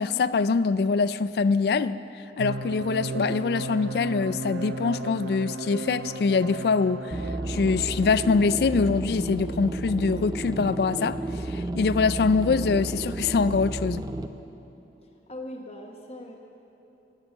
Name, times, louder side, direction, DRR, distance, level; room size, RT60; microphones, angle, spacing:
voice 1, 0.0-2.0 2.4-7.1 7.5-11.2 11.4-14.0, left 4 dB, 65° left, 16 dB, 0.3 m, -24 dB
sound 1, 2.4-8.6, right 2 dB, 90° right, 0.6 m, -35 dB
sound 2, 7.1-14.3, right 2 dB, 20° right, 0.5 m, -32 dB
voice 2, 15.0-16.4, left 1 dB, 35° left, 0 dB, 1.0 m, -40 dB
17.5 x 7.2 x 8.7 m, 2.9 s
head